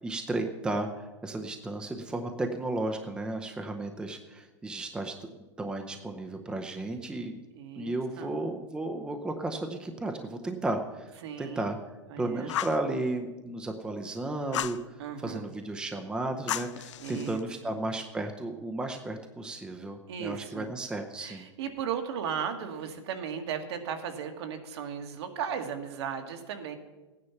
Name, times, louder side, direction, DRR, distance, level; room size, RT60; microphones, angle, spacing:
voice 1, 0.0-5.1 5.6-7.4 7.8-11.1 11.4-11.8 12.2-14.8 15.2-21.5, right 2 dB, 5° right, 4 dB, 0.7 m, -34 dB
voice 2, 7.5-8.4 11.2-11.7 12.1-12.5 15.0-15.5 17.0-17.8 20.1-20.7 21.2-26.8, right 7 dB, 65° right, 5 dB, 1.8 m, -36 dB
Fire, 12.5-12.8 14.5-14.8 16.5-17.4, left 12 dB, 80° left, 0.7 m, -33 dB
15.0 x 9.8 x 5.8 m, 1.2 s
supercardioid pair, 155°, 15 cm